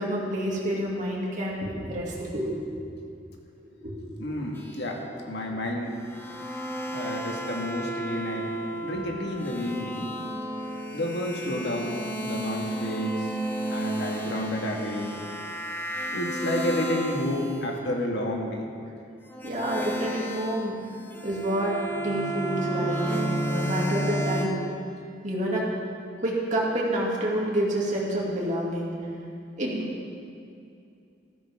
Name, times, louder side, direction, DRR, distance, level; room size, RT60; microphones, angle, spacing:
voice 1, 0.0-3.1 3.8-3.9 4.3-4.4 5.5-5.6 19.4-20.8 21.2-21.8 22.0-24.6 25.2-25.7 26.2-29.0 29.6-29.8, right 1 dB, 45° right, -4 dB, 2.6 m, -28 dB
voice 2, 4.2-5.9 6.5-6.6 6.9-8.5 8.8-10.1 10.9-13.3 13.7-15.1 16.1-18.7, left 1 dB, 70° left, 0 dB, 1.8 m, -30 dB
sound 1, 4.6-5.2 6.1-17.6 19.3-24.4, right 1 dB, 10° left, 1.1 m, -32 dB
14.5 x 13.5 x 3.7 m, 2.5 s
head